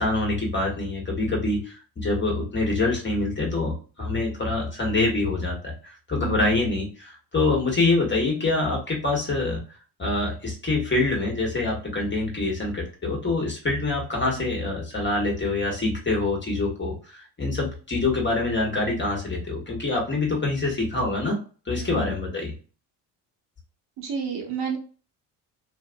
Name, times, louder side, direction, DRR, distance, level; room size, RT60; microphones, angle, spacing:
voice 1, 0.0-9.6 10.0-21.4 21.7-22.5, left 2 dB, 25° left, -1 dB, 1.4 m, -25 dB
voice 2, 24.0-24.8, right 6 dB, 55° right, 1 dB, 1.1 m, -31 dB
2.9 x 2.4 x 2.2 m, 0.37 s
hypercardioid pair, 65°, 47 cm